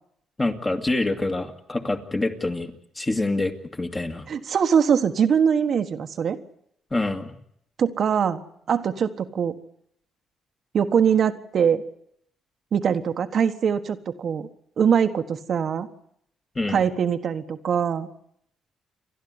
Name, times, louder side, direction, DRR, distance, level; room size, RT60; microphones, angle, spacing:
voice 1, 0.4-4.3 6.9-7.4 16.6-16.8, left 2 dB, 20° left, 5 dB, 2.3 m, -26 dB
voice 2, 4.3-6.4 7.8-8.4 8.7-9.6 10.7-11.8 12.7-14.5 14.8-15.9 16.7-18.1, right 7 dB, 55° right, 7 dB, 1.4 m, -22 dB
29.0 x 12.0 x 9.8 m, 0.72 s
cardioid pair, 90°, 0 cm